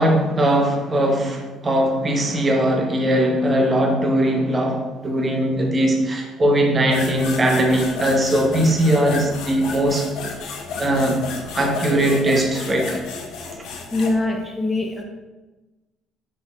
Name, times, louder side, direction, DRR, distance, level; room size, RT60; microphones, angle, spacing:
voice 1, 0.0-10.3 10.8-11.2 11.5-13.0 13.6-13.7, right 1 dB, 30° right, 2 dB, 0.9 m, -20 dB
sound 1, 6.9-14.1, left 4 dB, 70° left, 0.6 m, -32 dB
voice 2, 13.9-15.0, left 2 dB, 15° left, 0 dB, 1.0 m, -23 dB
5.3 x 3.8 x 2.4 m, 1.1 s
hypercardioid pair, 65°, 0 cm